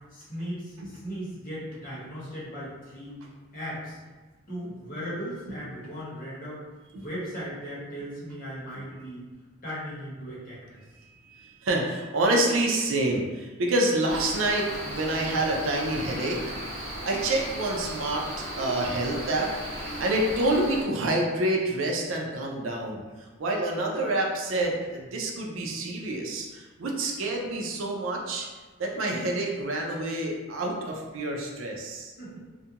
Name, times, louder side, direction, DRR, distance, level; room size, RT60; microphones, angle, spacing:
voice 1, 0.1-3.2 3.5-4.0 4.5-6.6 6.9-9.3 9.6-10.8 32.2-32.4, equal, 40° left, -8 dB, 0.9 m, -37 dB
voice 2, 10.9-16.4 16.8-19.5 20.0-28.5 28.8-32.1, right 1 dB, 70° right, 0 dB, 0.4 m, -28 dB
Cricket, 14.1-20.8, right 1 dB, 30° right, 0.8 m, -36 dB
2.4 x 2.2 x 2.8 m, 1.3 s
head